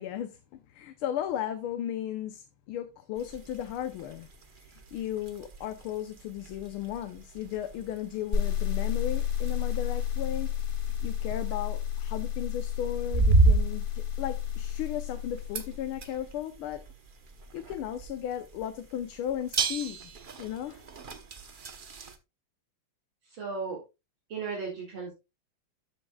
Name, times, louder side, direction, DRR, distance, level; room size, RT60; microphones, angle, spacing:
voice 1, 0.0-4.3 4.6-10.5 11.0-16.8 17.5-20.0 20.4-20.8, left 10 dB, 85° left, 1.7 m, -35 dB
sound 1, 3.2-22.2, right 2 dB, 45° right, 0.7 m, -33 dB
sound 2, 8.3-16.1, left 10 dB, 40° left, 0.8 m, -31 dB
voice 2, 23.2-23.8 24.3-25.1, right 4 dB, 70° right, 2.9 m, -35 dB
12.5 x 8.1 x 2.3 m
omnidirectional pair, 2.3 m